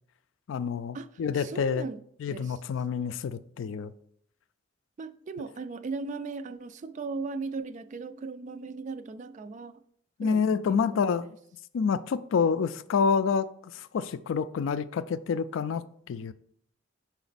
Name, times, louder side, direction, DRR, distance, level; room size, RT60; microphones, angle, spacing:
voice 1, 0.5-1.8 2.2-3.9 10.2-11.3 11.7-13.5 13.7-16.3, left 6 dB, 80° left, 0.3 m, -28 dB
voice 2, 1.4-2.0 2.3-2.5 5.0-9.8 10.2-11.3, right 4 dB, 40° right, 0.3 m, -38 dB
5.9 x 4.2 x 4.1 m
head